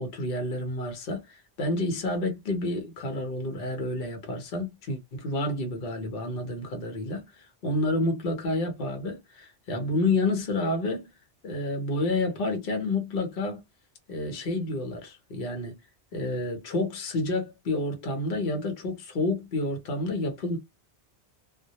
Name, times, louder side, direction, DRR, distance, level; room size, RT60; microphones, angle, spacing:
voice 1, 0.0-11.1 11.4-13.6 14.1-15.8 16.1-20.6, left 2 dB, 55° left, 0.9 m, -29 dB
2.1 x 2.1 x 2.7 m
omnidirectional pair, 1.1 m